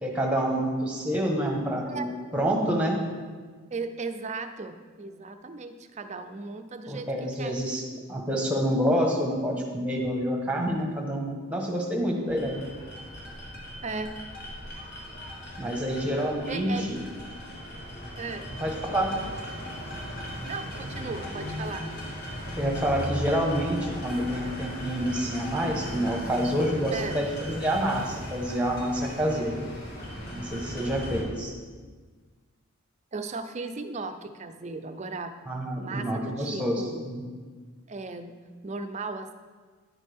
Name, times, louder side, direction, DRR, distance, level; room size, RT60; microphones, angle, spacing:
voice 1, 0.0-2.1 2.3-3.0 6.9-12.6 15.6-17.0 18.6-19.2 22.6-29.6 30.3-31.5 35.5-37.3, equal, 5° right, 1 dB, 1.2 m, -28 dB
voice 2, 3.7-7.6 13.8-14.2 16.5-17.0 18.2-18.5 20.4-21.9 26.9-27.3 33.1-35.3 35.8-37.1 37.9-38.3 38.6-39.3, right 3 dB, 30° right, 9 dB, 0.5 m, -36 dB
sound 1, 12.3-31.2, equal, 50° left, 2.1 m, -38 dB
9.9 x 8.5 x 3.5 m, 1.5 s
head